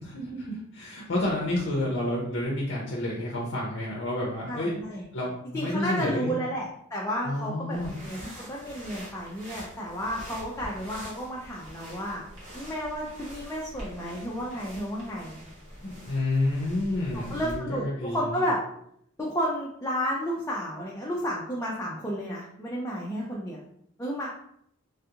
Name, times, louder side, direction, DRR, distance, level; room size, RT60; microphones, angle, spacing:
voice 1, 0.0-4.7 5.1-6.4 7.2-8.0 15.8-18.4, left 1 dB, 60° left, -4 dB, 0.6 m, -30 dB
voice 2, 4.5-5.0 5.5-12.2 12.5-15.5 17.1-18.6 19.2-23.6 24.0-24.3, equal, 15° left, -5 dB, 0.4 m, -32 dB
sound 1, 7.7-17.6, equal, 60° right, 1.3 m, -45 dB
3.3 x 2.4 x 2.8 m, 0.70 s
head